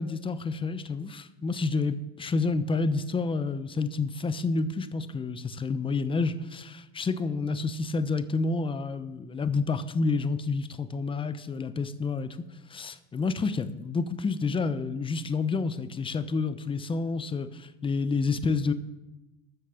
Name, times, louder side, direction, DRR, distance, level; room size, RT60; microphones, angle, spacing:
voice 1, 0.0-12.4 12.7-18.7, left 4 dB, 15° left, 12 dB, 0.8 m, -29 dB
13.0 x 6.6 x 7.0 m, 1.0 s
supercardioid pair, 115°, 33 cm